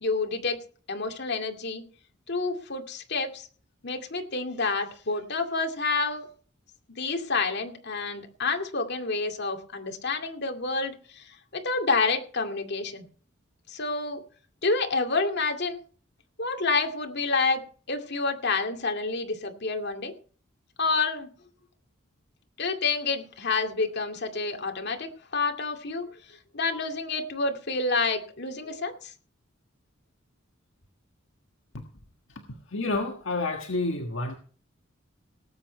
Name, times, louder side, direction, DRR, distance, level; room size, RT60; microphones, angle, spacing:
voice 1, 0.0-0.6 0.9-1.8 2.3-3.5 3.8-6.3 6.9-13.1 13.7-14.2 14.6-15.8 16.4-17.6 17.9-20.1 20.8-21.3 22.6-26.2 26.5-29.1, left 3 dB, 60° left, 4 dB, 2.4 m, -28 dB
voice 2, 32.7-34.3, left 2 dB, 75° left, 3 dB, 1.6 m, -29 dB
18.5 x 8.4 x 4.5 m, 0.41 s
head